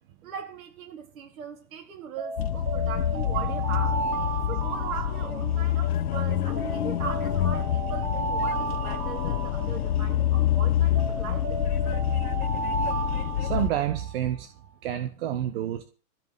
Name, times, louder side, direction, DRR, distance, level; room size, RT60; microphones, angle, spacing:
voice 1, 0.2-4.0 4.5-12.0, right 7 dB, 55° right, 4.4 m, -39 dB
Alarm, 2.2-5.9 6.6-10.3 10.9-14.2, right 4 dB, 75° right, 4.1 m, -34 dB
sound 1, 2.4-13.7, left 11 dB, 65° left, 1.1 m, -27 dB
voice 2, 13.1-14.5 14.8-15.8, right 11 dB, 35° right, 1.3 m, -29 dB
15.0 x 6.0 x 9.2 m
hypercardioid pair, 140°, 49 cm